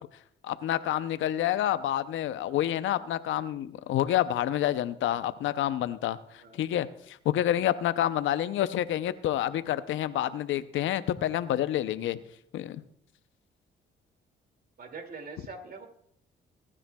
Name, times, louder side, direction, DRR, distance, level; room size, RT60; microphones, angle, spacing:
voice 1, 0.4-12.2 12.5-12.8, left 12 dB, 80° left, 13 dB, 0.7 m, -28 dB
voice 2, 14.8-15.9, right 4 dB, 50° right, 4 dB, 2.4 m, -43 dB
24.0 x 10.0 x 2.3 m, 0.69 s
cardioid pair, 90°, 20 cm